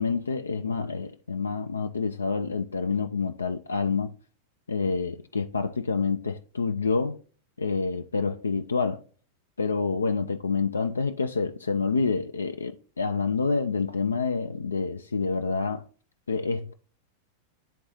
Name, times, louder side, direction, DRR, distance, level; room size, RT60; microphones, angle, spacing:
voice 1, 0.0-4.1 4.7-7.2 7.6-9.0 9.6-15.8 16.3-16.7, left 4 dB, 75° left, 0.4 m, -27 dB
10.0 x 3.8 x 2.6 m
figure-of-eight pair, 90°, 0 cm